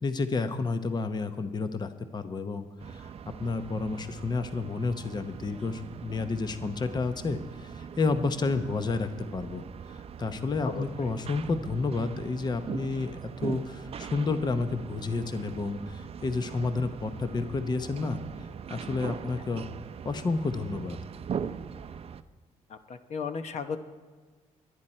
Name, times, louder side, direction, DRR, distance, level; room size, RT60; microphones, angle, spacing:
voice 1, 0.0-3.1 3.4-19.7 20.0-21.0, left 3 dB, 30° left, 9 dB, 0.8 m, -31 dB
sound 1, 2.8-22.2, right 7 dB, 45° right, 0.6 m, -41 dB
voice 2, 10.6-11.1 22.7-23.8, left 5 dB, 60° left, 9 dB, 0.9 m, -35 dB
23.0 x 9.9 x 4.4 m, 1.4 s
cardioid pair, 90°, 13 cm